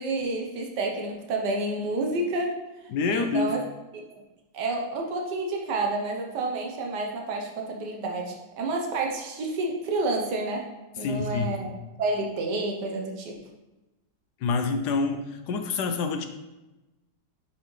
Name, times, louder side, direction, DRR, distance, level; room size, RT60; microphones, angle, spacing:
voice 1, 0.0-2.6 3.1-3.6 4.1-4.2 4.5-10.7 11.0-11.7 12.0-13.3, right 2 dB, 80° right, 1 dB, 1.6 m, -29 dB
voice 2, 2.9-3.6 11.0-11.6 14.4-16.3, left 4 dB, 75° left, 7 dB, 1.2 m, -27 dB
10.5 x 4.1 x 3.2 m, 1.0 s
omnidirectional pair, 1.8 m